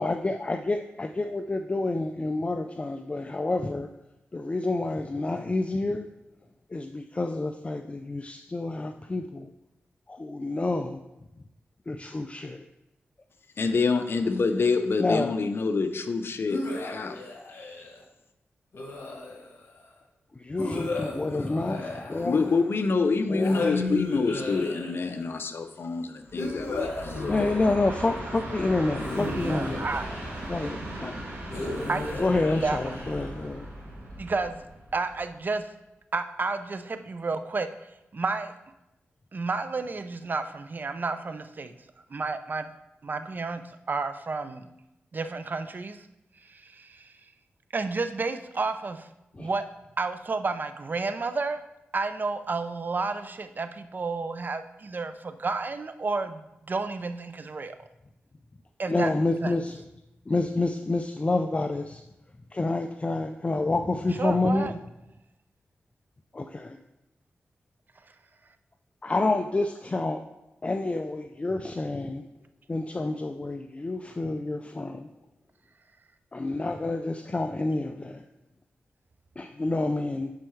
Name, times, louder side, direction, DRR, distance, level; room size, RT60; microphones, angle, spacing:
voice 1, 0.0-3.9 4.3-6.1 6.7-9.5 10.1-11.0 11.9-12.6 15.0-15.3 20.4-22.5 23.3-23.7 27.3-29.9 30.5-31.1 32.2-33.7 49.3-49.5 58.9-59.8 60.3-62.0 62.5-64.7 66.3-66.8 69.0-70.2 70.6-72.2 72.7-75.1 76.3-78.2 79.4-80.3, left 2 dB, 30° left, 6 dB, 0.4 m, -28 dB
voice 2, 13.6-17.2 22.2-27.8, left 4 dB, 60° left, 7 dB, 0.7 m, -27 dB
sound 1, 16.5-18.0 18.7-19.7 20.6-22.8 23.4-25.2 26.4-28.1 28.9-30.6 31.5-33.5, left 2 dB, 75° left, 1.4 m, -35 dB
Train, 26.2-35.4, right 1 dB, 80° right, 2.4 m, -38 dB
voice 3, 29.2-30.1 31.9-32.9 34.2-34.6 34.9-35.7 36.1-37.7 38.1-38.5 39.3-41.7 42.1-42.7 43.0-44.7 45.1-46.0 46.4-47.1 47.7-49.1 49.4-49.6 50.0-51.6 51.9-57.8 58.8-59.1 59.4-59.5 64.2-64.8, right 3 dB, 45° right, 10 dB, 0.5 m, -31 dB
10.5 x 4.5 x 3.2 m, 0.92 s
cardioid pair, 60°, 4 cm